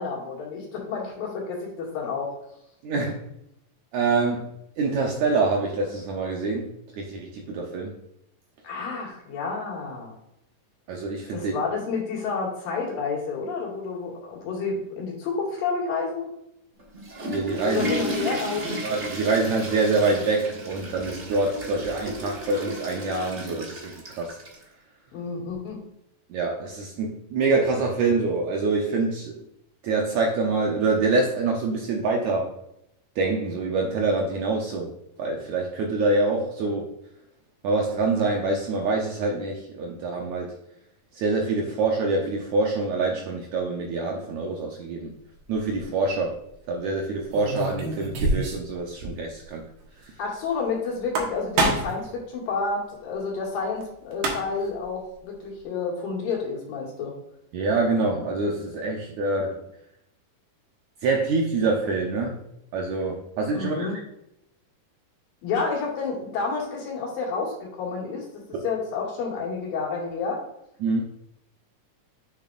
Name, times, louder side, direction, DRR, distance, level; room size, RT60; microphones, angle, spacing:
voice 1, 0.0-2.3 8.6-10.1 11.3-16.3 17.6-18.9 25.1-25.9 50.2-57.1 63.5-64.0 65.4-70.4, left 4 dB, 85° left, -3 dB, 3.9 m, -30 dB
voice 2, 2.8-3.2 3.9-7.9 10.9-11.6 17.2-17.9 18.8-24.4 26.3-29.4 29.8-32.5 33.2-34.9 35.2-36.9 37.6-40.5 41.1-45.1 45.5-46.4 46.7-49.6 50.0-50.1 57.5-59.6 61.0-62.4 62.7-64.0 70.8-71.0, right 3 dB, 70° right, 0 dB, 2.0 m, -25 dB
Water / Toilet flush, 16.8-24.6, right 1 dB, 40° right, 0.9 m, -34 dB
sound 1, 45.5-45.8 47.3-48.7 49.0-49.1 49.4-49.5 50.9-52.0 53.8-53.9 54.1-54.7, right 2 dB, 85° right, 3.2 m, -26 dB
8.4 x 6.8 x 2.5 m, 0.81 s
omnidirectional pair, 3.9 m